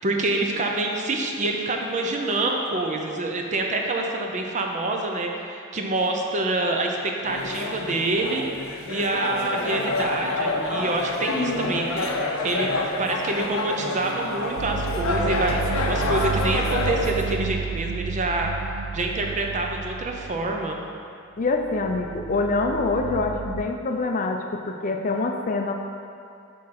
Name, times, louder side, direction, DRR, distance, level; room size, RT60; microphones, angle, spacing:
voice 1, 0.0-8.4 8.9-18.6 18.9-20.8, right 2 dB, 35° right, 2 dB, 0.6 m, -26 dB
sound 1, 7.3-17.4, left 2 dB, 85° left, 0.6 m, -28 dB
voice 2, 11.3-11.8 21.4-25.7, left 3 dB, 40° left, 3 dB, 0.4 m, -25 dB
sound 2, 14.6-20.9 21.4-23.7, right 5 dB, 85° right, 0.4 m, -31 dB
6.3 x 3.8 x 5.7 m, 2.5 s
head